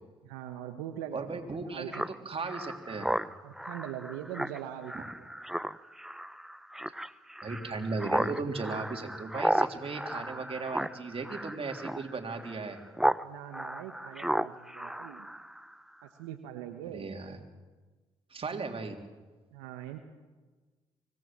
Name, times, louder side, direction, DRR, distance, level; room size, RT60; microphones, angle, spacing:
voice 1, 0.2-1.3 1.7-2.0 3.4-4.9 13.2-15.3 16.0-17.1 19.5-20.0, right 11 dB, 90° right, 6 dB, 1.2 m, -42 dB
voice 2, 1.1-3.1 4.9-5.0 6.9-7.0 7.4-12.8 16.9-17.4 18.3-19.0, right 4 dB, 45° right, 3 dB, 3.6 m, -36 dB
Speech synthesizer, 1.9-13.2 13.5-15.7, right 1 dB, 5° right, 0.8 m, -34 dB
25.0 x 18.0 x 7.6 m, 1.3 s
hypercardioid pair, 45°, 14 cm